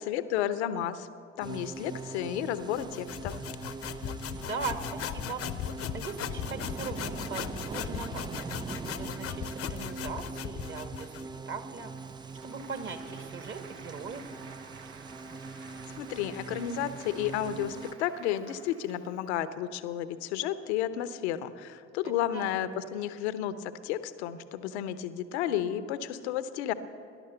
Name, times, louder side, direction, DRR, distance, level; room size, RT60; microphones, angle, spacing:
voice 1, 0.1-1.1 1.4-3.4 15.6-26.7, left 11 dB, 70° left, 13 dB, 0.8 m, -32 dB
sound 1, 1.4-17.9, right 4 dB, 15° right, 0.3 m, -42 dB
sound 2, 2.7-11.3, left 10 dB, 45° left, 0.8 m, -38 dB
voice 2, 4.3-5.4 5.9-11.1 11.5-12.1 12.4-14.2 22.0-22.6, right 5 dB, 35° right, 7 dB, 1.8 m, -40 dB
Applause, 11.9-19.3, right 5 dB, 70° right, 1.3 m, -52 dB
18.0 x 11.5 x 6.8 m, 2.5 s
figure-of-eight pair, 55°, 34 cm